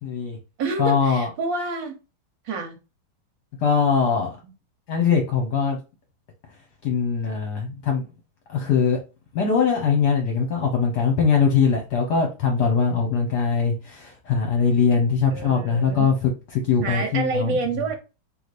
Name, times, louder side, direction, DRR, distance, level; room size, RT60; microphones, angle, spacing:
voice 1, 0.0-0.4 0.8-1.3 3.6-4.3 4.9-5.8 6.8-8.0 8.5-9.0 9.3-17.6, left 6 dB, 65° left, 1.3 m, -21 dB
voice 2, 0.6-2.0 2.4-2.8 15.3-16.1 16.8-18.0, right 3 dB, 70° right, 1.5 m, -28 dB
3.2 x 3.1 x 4.0 m
omnidirectional pair, 2.2 m